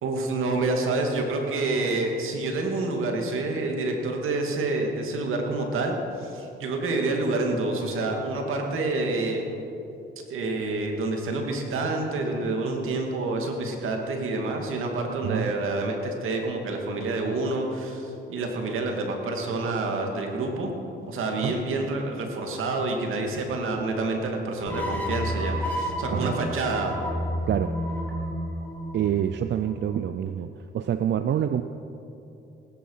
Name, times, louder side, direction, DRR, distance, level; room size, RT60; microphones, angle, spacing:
voice 1, 0.0-9.4 10.3-20.7 21.1-27.0, right 2 dB, 80° right, 2 dB, 2.3 m, -28 dB
voice 2, 15.2-15.5 21.4-21.5 26.1-26.4 27.5-27.7 28.9-31.6, right 10 dB, 60° right, 9 dB, 0.6 m, -27 dB
sound 1, 24.7-29.9, equal, 10° left, 2.9 m, -31 dB
19.0 x 10.5 x 5.7 m, 2.9 s
cardioid pair, 90°, 21 cm